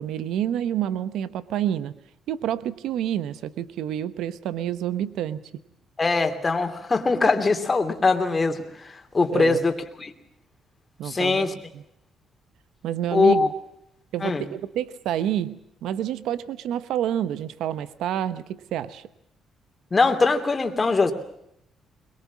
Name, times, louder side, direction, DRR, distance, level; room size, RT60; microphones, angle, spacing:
voice 1, 0.0-1.9 2.3-5.4 9.3-9.6 11.0-11.5 11.7-11.8 12.8-13.5 14.1-19.1, right 10 dB, 85° right, 14 dB, 1.0 m, -28 dB
voice 2, 6.0-10.1 11.0-11.5 13.1-13.5 14.2-14.4 19.9-21.1, left 3 dB, 30° left, 6 dB, 3.0 m, -22 dB
22.5 x 22.0 x 7.3 m, 0.79 s
cardioid pair, 90°, 0 cm